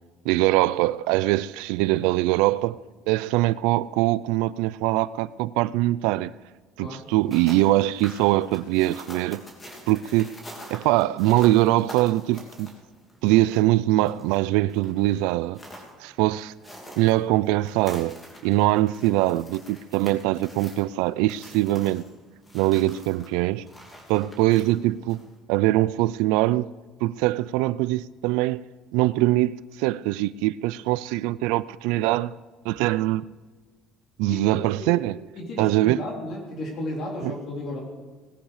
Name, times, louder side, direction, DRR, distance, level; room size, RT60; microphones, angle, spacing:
voice 1, 0.2-2.8 3.1-6.3 6.8-9.4 9.9-10.3 10.7-12.7 13.2-15.6 16.0-16.5 17.0-18.2 18.4-22.0 22.5-23.6 24.1-25.2 25.5-26.7 27.0-28.6 28.9-32.3 32.6-33.2 34.2-35.1 35.6-36.0 37.2-37.3, right 17 dB, 90° right, 0.4 m, -22 dB
sound 1, 7.1-25.4, equal, 15° left, 3.1 m, -46 dB
voice 2, 34.3-35.0 35.4-37.8, left 1 dB, 45° left, 4.0 m, -33 dB
18.5 x 10.0 x 5.0 m
cardioid pair, 150°, 0 cm